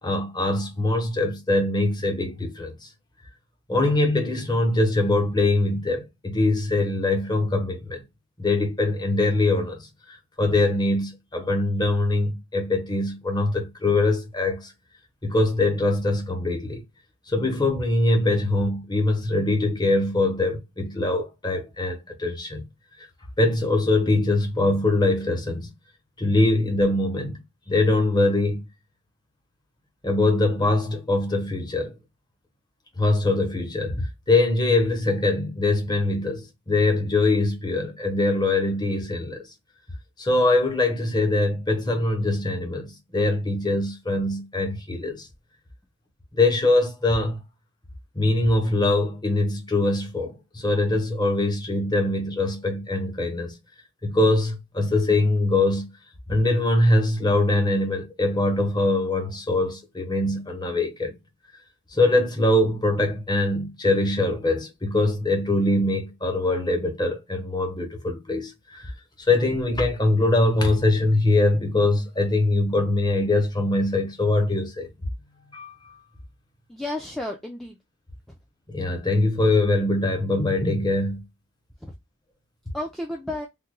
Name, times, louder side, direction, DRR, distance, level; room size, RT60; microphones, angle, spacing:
voice 1, 0.0-2.9 3.7-8.0 8.4-14.7 15.2-16.8 17.3-22.6 23.0-23.1 23.4-25.7 26.2-28.6 30.0-31.9 33.0-39.4 40.2-45.3 46.3-47.4 48.2-53.6 54.0-55.9 56.3-61.1 61.9-68.9 69.2-74.9 75.5-76.0 78.7-81.2, left 2 dB, 20° left, 0.7 m, -23 dB
voice 2, 76.7-77.8 78.3-78.4 81.8-81.9 82.7-83.5, left 1 dB, ahead, 0.3 m, -32 dB
3.5 x 2.2 x 3.0 m
head